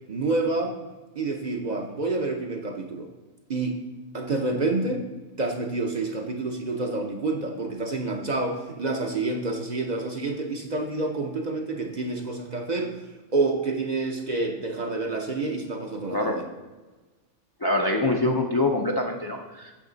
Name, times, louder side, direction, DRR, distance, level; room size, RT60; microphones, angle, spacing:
voice 1, 0.1-0.7 1.2-3.1 3.5-3.8 4.1-5.0 5.4-13.0 13.3-16.4, right 3 dB, 45° right, 2 dB, 0.7 m, -28 dB
voice 2, 17.6-19.7, left 2 dB, 35° left, 0 dB, 0.4 m, -24 dB
8.8 x 6.3 x 3.9 m, 1.2 s
omnidirectional pair, 1.3 m